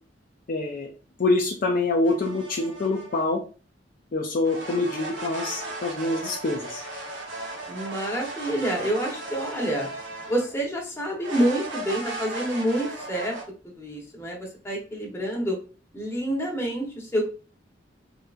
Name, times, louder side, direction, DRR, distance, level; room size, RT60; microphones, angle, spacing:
voice 1, 0.5-0.9 1.2-3.4 4.1-6.8, left 2 dB, 50° left, 1 dB, 0.4 m, -25 dB
sound 1, 2.0-3.3 4.4-10.6 11.2-13.4, right 2 dB, 90° right, 1.0 m, -36 dB
voice 2, 7.7-9.9 10.3-13.3 13.8-15.6 15.9-17.2, right 1 dB, 15° left, -1 dB, 0.9 m, -27 dB
3.7 x 2.8 x 2.4 m, 0.36 s
head